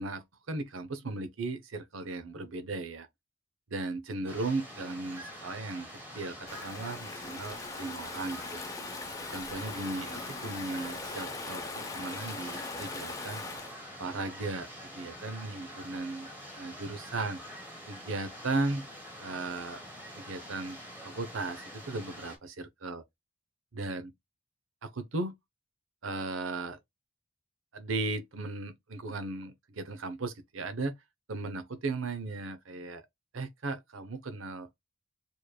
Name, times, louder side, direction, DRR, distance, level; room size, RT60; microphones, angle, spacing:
voice 1, 0.0-3.1 3.7-8.6 9.3-13.4 14.0-14.7 14.9-16.3 16.5-17.4 17.9-18.9 19.2-19.8 20.2-23.0 23.7-24.1 24.8-25.4 26.0-26.8 27.7-31.0 31.3-33.0 33.3-34.7, right 3 dB, 85° right, 0.8 m, -36 dB
sound 1, 4.3-22.4, equal, 10° right, 2.0 m, -46 dB
Stream / Ocean, 6.5-13.7, left 3 dB, 15° left, 0.7 m, -40 dB
7.0 x 3.2 x 2.3 m
head